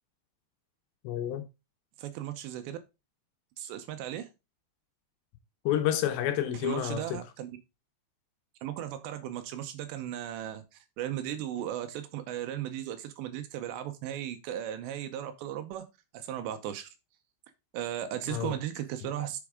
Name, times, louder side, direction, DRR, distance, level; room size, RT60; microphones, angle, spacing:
voice 1, 1.0-1.4 5.7-7.2 18.3-18.5, left 11 dB, 75° left, 2.8 m, -29 dB
voice 2, 2.0-2.8 3.6-4.3 6.6-7.5 8.6-15.9 16.1-16.9 17.7-19.4, right 11 dB, 80° right, 2.8 m, -36 dB
8.3 x 7.1 x 3.6 m
omnidirectional pair, 5.4 m